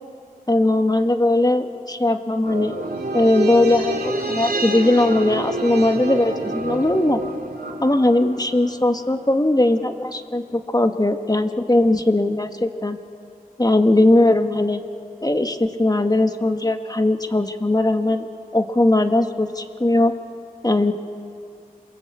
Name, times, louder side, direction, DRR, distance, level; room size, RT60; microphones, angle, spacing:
voice 1, 0.5-2.8 3.1-7.2 7.8-13.0 13.6-14.8 15.2-18.3 18.5-20.1 20.6-20.9, left 2 dB, 25° left, 6 dB, 1.6 m, -19 dB
sound 1, 2.4-9.0 9.3-9.4, right 2 dB, 90° right, 3.2 m, -28 dB
27.5 x 21.0 x 8.5 m, 2.5 s
cardioid pair, 40°, 15 cm